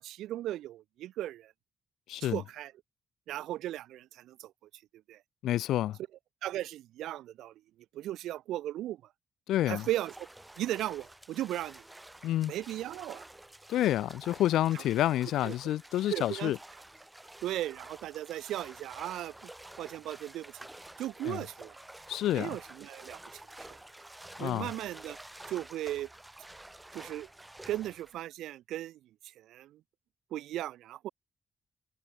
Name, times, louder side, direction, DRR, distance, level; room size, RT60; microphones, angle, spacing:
voice 1, 0.0-1.5 2.2-2.7 3.3-4.5 5.1-5.2 6.4-7.5 7.9-9.0 9.7-10.1 10.6-11.8 12.5-13.3 15.4-15.5 16.1-16.5 17.4-19.5 19.8-20.5 21.0-21.8 22.3-23.2 23.6-23.7 24.4-25.2 25.5-26.1 26.9-27.3 27.7-29.0 29.4-29.8 30.3-31.1, right 13 dB, 80° right, 0.4 m, -36 dB
voice 2, 2.1-2.4 5.4-6.0 9.5-9.9 12.2-12.5 13.7-16.6 21.2-21.4 22.1-22.6 24.4-24.7, left 13 dB, 80° left, 0.7 m, -29 dB
sound 1, 9.8-28.2, right 1 dB, 15° right, 2.3 m, -50 dB
supercardioid pair, 55°, 0 cm